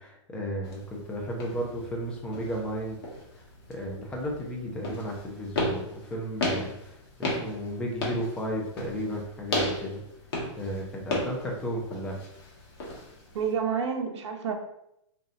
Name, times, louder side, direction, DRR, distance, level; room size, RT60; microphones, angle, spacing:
voice 1, 0.0-3.0 3.7-10.0 10.6-12.2, equal, 5° left, -2 dB, 0.5 m, -34 dB
sound 1, 0.6-13.5, left 1 dB, 55° left, 1.3 m, -35 dB
voice 2, 13.3-14.5, right 6 dB, 70° right, 1 dB, 0.7 m, -29 dB
3.2 x 2.7 x 3.8 m, 0.79 s
hypercardioid pair, 160°, 16 cm